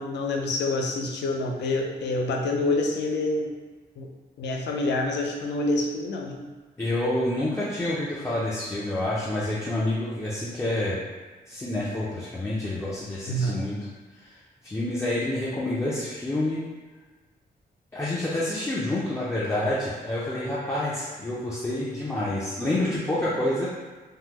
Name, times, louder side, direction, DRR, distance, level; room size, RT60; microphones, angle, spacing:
voice 1, 0.0-3.5 4.0-4.1 4.4-6.5 13.3-13.6, left 2 dB, 80° left, 2 dB, 0.4 m, -27 dB
voice 2, 6.8-11.0 11.5-13.8 14.2-14.3 14.6-16.6 17.9-23.7, left 1 dB, 15° left, -8 dB, 0.4 m, -28 dB
3.5 x 2.0 x 2.9 m, 1.3 s
wide cardioid pair, 135°, 18 cm